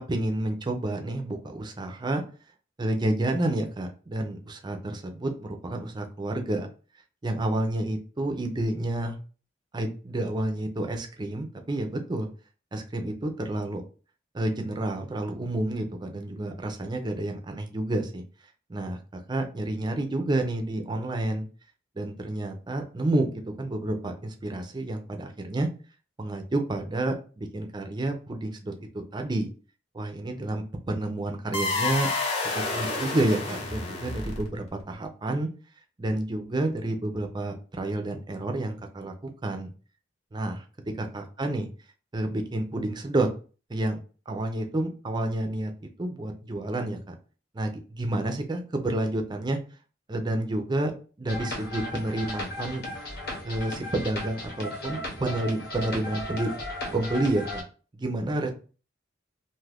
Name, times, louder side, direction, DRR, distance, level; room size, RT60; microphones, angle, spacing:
voice 1, 0.0-2.2 2.8-6.7 7.2-9.2 9.7-12.3 12.7-13.8 14.3-18.2 18.7-19.0 19.3-21.5 22.0-23.3 23.6-25.7 26.2-29.5 29.9-32.1 32.7-35.5 36.0-39.7 40.3-40.6 41.0-41.7 42.1-43.3 43.7-44.0 44.3-45.7 46.0-47.1 47.5-49.6 50.1-50.9 51.2-52.8 53.4-56.5 56.9-57.6 57.9-58.5, right 1 dB, 25° right, 4 dB, 0.5 m, -29 dB
sound 1, 31.5-34.7, left 3 dB, 30° left, 0.8 m, -29 dB
sound 2, 51.3-57.6, left 1 dB, 60° left, 1.0 m, -36 dB
2.6 x 2.4 x 3.3 m, 0.37 s
head